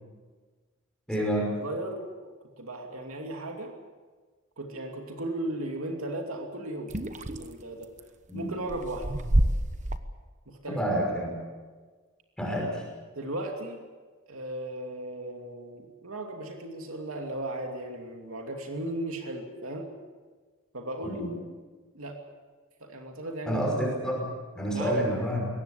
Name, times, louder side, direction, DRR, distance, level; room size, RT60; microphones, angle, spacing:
voice 1, 1.1-1.5 8.3-8.5 10.7-11.3 12.4-12.8 21.0-21.3 23.5-24.3 24.5-25.4, right 1 dB, 5° left, -2 dB, 5.9 m, -28 dB
voice 2, 1.6-3.7 4.6-6.9 7.3-7.9 8.3-9.1 10.5-10.8 13.2-13.8 14.3-19.9 20.7-21.3 21.9-22.2 22.8-23.6 24.7-25.1, right 1 dB, 80° right, 2 dB, 2.7 m, -36 dB
sound 1, 6.9-8.0 8.6-10.0, right 1 dB, 35° right, 1.1 m, -27 dB
22.5 x 18.0 x 8.5 m, 1.4 s
head